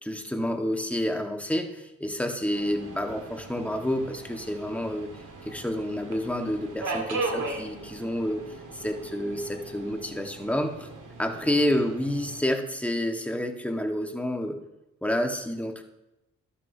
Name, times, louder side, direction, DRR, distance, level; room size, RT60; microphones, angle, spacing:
voice 1, 0.0-5.1 5.4-8.4 8.7-10.9 11.2-14.6 15.0-15.8, left 1 dB, 5° left, 3 dB, 1.5 m, -29 dB
Subway metro underground, 2.5-12.4, right 3 dB, 60° right, 1.9 m, -38 dB
12.0 x 11.5 x 2.8 m, 0.95 s
supercardioid pair, 45°, 35 cm